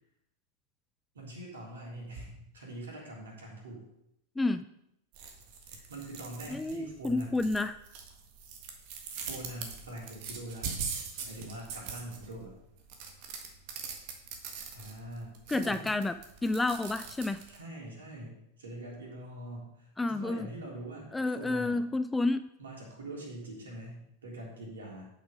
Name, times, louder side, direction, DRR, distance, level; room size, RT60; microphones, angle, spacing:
voice 1, 1.1-3.8 5.7-7.5 9.2-10.8 11.2-12.5 14.7-15.9 17.5-21.8 22.6-25.1, right 1 dB, 65° right, -2 dB, 3.5 m, -43 dB
sound 1, 5.1-17.6, right 6 dB, 45° right, 1.7 m, -43 dB
voice 2, 6.5-7.8 15.5-16.2 16.4-17.4 20.0-20.5 21.1-22.5, left 2 dB, 10° left, 11 dB, 0.4 m, -30 dB
8.7 x 7.4 x 5.2 m, 0.80 s
figure-of-eight pair, 90°, 0 cm